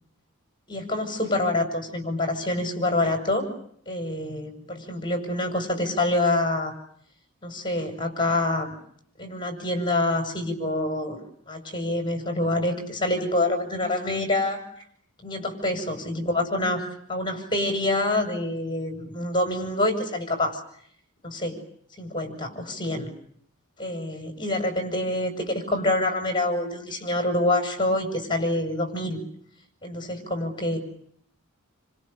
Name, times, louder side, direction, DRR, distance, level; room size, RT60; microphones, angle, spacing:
voice 1, 0.7-3.5 3.9-6.7 7.4-8.7 9.2-11.2 11.5-14.6 15.2-20.6 21.2-21.6 22.0-23.1 23.8-29.2 29.8-30.8, left 1 dB, 20° left, 6 dB, 6.9 m, -26 dB
29.5 x 27.0 x 6.8 m, 0.65 s
head